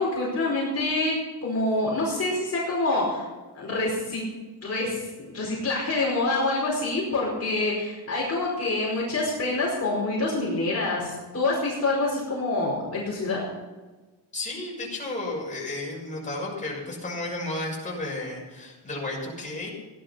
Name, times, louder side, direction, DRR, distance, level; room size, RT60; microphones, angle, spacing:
voice 1, 0.0-3.2 3.5-4.2 4.6-13.4, left 2 dB, 35° left, -5 dB, 5.0 m, -26 dB
voice 2, 14.3-19.7, left 2 dB, 20° left, -3 dB, 6.4 m, -33 dB
17.0 x 12.0 x 5.8 m, 1.3 s
cardioid pair, 135°, 40 cm